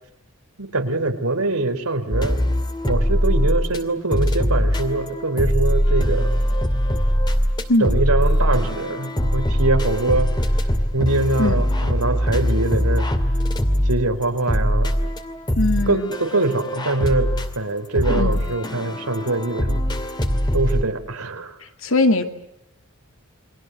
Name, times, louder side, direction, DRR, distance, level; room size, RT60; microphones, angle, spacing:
voice 1, 0.6-2.4 2.8-6.4 7.8-10.3 10.9-13.1 13.8-15.0 15.9-17.3 17.6-19.8 20.5-21.6, right 2 dB, 85° right, 7 dB, 3.6 m, -23 dB
sound 1, 2.1-3.8 4.1-20.8, equal, 20° left, 2.4 m, -21 dB
voice 2, 7.7-8.0 11.4-11.6 15.6-16.1 18.1-18.4 21.6-22.2, left 2 dB, 65° left, 7 dB, 2.5 m, -21 dB
29.5 x 23.5 x 7.8 m, 0.81 s
head